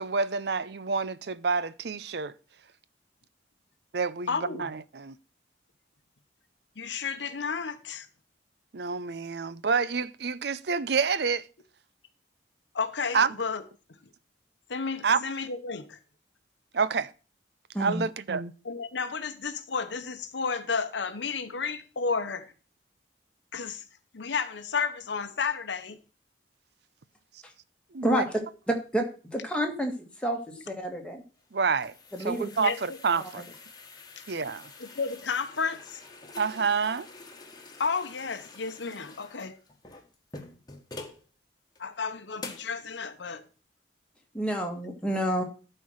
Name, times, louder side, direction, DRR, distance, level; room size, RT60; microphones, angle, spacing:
voice 1, 0.0-2.3 3.9-4.3 4.5-5.1 8.7-11.5 13.1-13.3 15.0-15.2 16.7-17.1 17.8-18.5 27.9-28.2 31.5-31.9 32.3-33.4 34.3-34.6 36.4-37.1, right 5 dB, 60° right, 0.5 m, -28 dB
voice 2, 4.3-4.7 6.8-8.1 12.7-13.6 14.7-16.0 18.6-22.5 23.5-23.8 24.1-26.0 32.6-32.8 34.8-36.0 37.8-39.6 41.8-43.4, left 5 dB, 75° left, 0.9 m, -32 dB
voice 3, 28.0-28.4 28.7-31.2 32.1-32.5 33.2-33.4 44.3-45.4, equal, 5° left, 1.7 m, -29 dB
sound 1, 31.4-41.2 41.7-41.8 42.4-42.8, left 3 dB, 20° left, 1.5 m, -47 dB
12.0 x 4.5 x 6.3 m
head